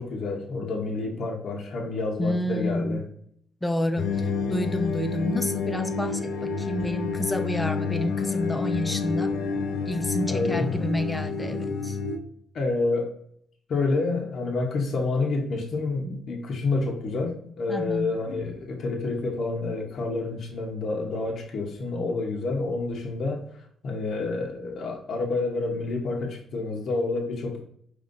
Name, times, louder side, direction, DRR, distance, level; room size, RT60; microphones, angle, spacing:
voice 1, 0.0-3.0 10.3-10.9 12.5-13.2 13.7-23.4 23.8-27.6, left 3 dB, 60° left, 1 dB, 0.8 m, -28 dB
voice 2, 2.2-3.0 3.6-4.1 4.5-9.3 9.9-12.0 17.7-18.1, left 1 dB, 15° left, 8 dB, 0.6 m, -29 dB
sound 1, 4.0-12.2, left 4 dB, 85° left, 0.5 m, -29 dB
5.3 x 3.1 x 2.5 m, 0.67 s
cardioid pair, 90°, 0 cm